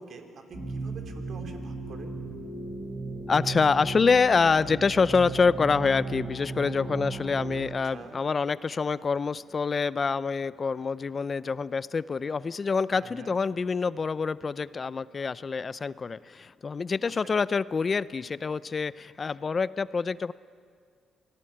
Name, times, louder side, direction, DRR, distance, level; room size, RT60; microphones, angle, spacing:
voice 1, 0.0-2.1 7.8-8.2 12.9-13.4 17.0-17.1, right 3 dB, 60° right, 4 dB, 3.3 m, -45 dB
sound 1, 0.5-7.6, right 3 dB, 30° right, 3.2 m, -36 dB
voice 2, 3.3-20.3, left 5 dB, 35° left, 18 dB, 0.5 m, -26 dB
25.5 x 18.5 x 8.8 m, 2.1 s
cardioid pair, 90°, 0 cm